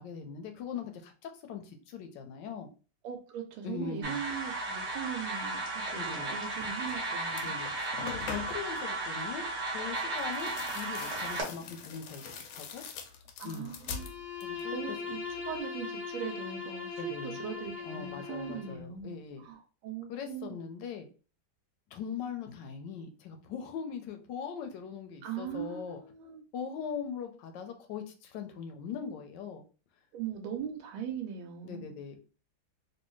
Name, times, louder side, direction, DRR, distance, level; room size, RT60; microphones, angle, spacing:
voice 1, 0.0-2.7 3.6-4.2 6.0-6.3 7.3-9.4 9.7-12.2 12.5-12.8 13.4-13.7 14.4-14.8 17.0-17.4 17.8-19.4 20.1-21.1 21.9-26.0 26.5-29.6 31.6-32.2, left 7 dB, 70° left, 1.1 m, -40 dB
voice 2, 3.0-7.5 13.4-14.1 14.7-20.6 25.2-26.4 30.1-32.0, right 8 dB, 90° right, 1.4 m, -40 dB
sound 1, 4.0-11.4, right 2 dB, 50° right, 0.9 m, -35 dB
sound 2, 6.8-7.0 7.3-8.8 10.1-14.7 15.0-15.6, left 5 dB, 90° left, 1.4 m, -44 dB
Bowed string instrument, 13.9-18.8, left 5 dB, 10° right, 1.3 m, -40 dB
3.2 x 2.7 x 3.0 m
omnidirectional pair, 2.2 m